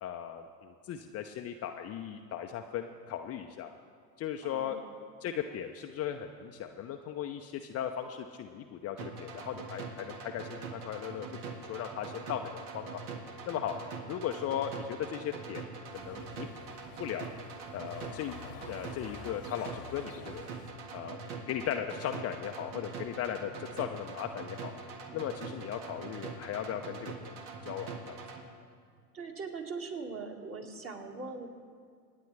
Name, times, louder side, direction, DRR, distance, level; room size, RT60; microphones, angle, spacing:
voice 1, 0.0-3.7 4.2-4.8 5.2-13.0 13.5-13.7 14.1-15.7 15.9-16.5 17.0-17.3 17.7-18.3 18.7-20.4 20.9-21.2 21.5-24.7 25.1-27.4 27.6-28.2, left 9 dB, 30° left, 4 dB, 0.6 m, -37 dB
voice 2, 4.4-4.9 25.0-25.2 29.1-31.5, right 4 dB, 25° right, 2 dB, 1.9 m, -41 dB
sound 1, 9.0-28.4, right 4 dB, 60° right, 1.8 m, -43 dB
sound 2, 15.9-20.7, left 7 dB, 80° left, 1.3 m, -50 dB
26.5 x 9.3 x 3.3 m, 2.2 s
hypercardioid pair, 85°, 49 cm